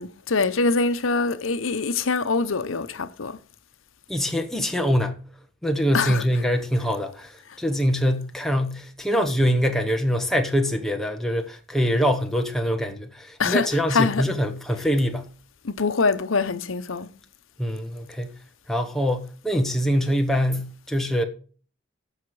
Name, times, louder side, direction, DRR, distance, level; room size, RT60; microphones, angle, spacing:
voice 1, 0.0-3.4 5.9-6.2 13.4-14.2 15.6-17.1, left 4 dB, 80° left, 0.9 m, -24 dB
voice 2, 4.1-5.2 5.6-15.3 17.6-18.3 18.7-21.2, equal, ahead, 1.0 m, -24 dB
14.5 x 5.8 x 4.8 m
head